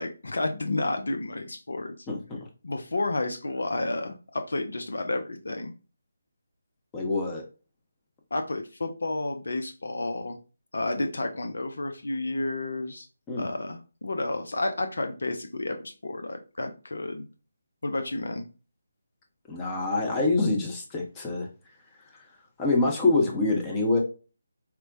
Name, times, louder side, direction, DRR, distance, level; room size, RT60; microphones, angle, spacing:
voice 1, 0.0-2.0 2.6-5.7 8.3-10.4 10.7-13.1 13.4-17.2 17.8-18.4, left 2 dB, 65° left, 6 dB, 0.4 m, -31 dB
voice 2, 2.1-2.4 6.9-7.4 13.3-13.5 19.5-21.5 22.6-24.0, left 2 dB, 15° left, -1 dB, 0.7 m, -25 dB
4.3 x 2.1 x 2.6 m, 0.34 s
figure-of-eight pair, 150°, 0 cm